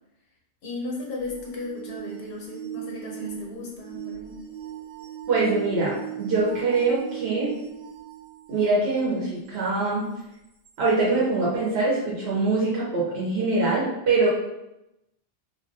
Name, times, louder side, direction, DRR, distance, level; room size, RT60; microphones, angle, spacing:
voice 1, 0.6-4.4, left 2 dB, 85° left, -1 dB, 0.8 m, -35 dB
sound 1, 1.2-8.8 9.5-9.6 10.6-10.7, right 13 dB, 50° right, 0.5 m, -39 dB
voice 2, 5.3-7.5 8.5-10.0 10.8-14.3, right 3 dB, 85° right, -6 dB, 0.9 m, -23 dB
2.3 x 2.2 x 2.5 m, 0.90 s
omnidirectional pair, 1.0 m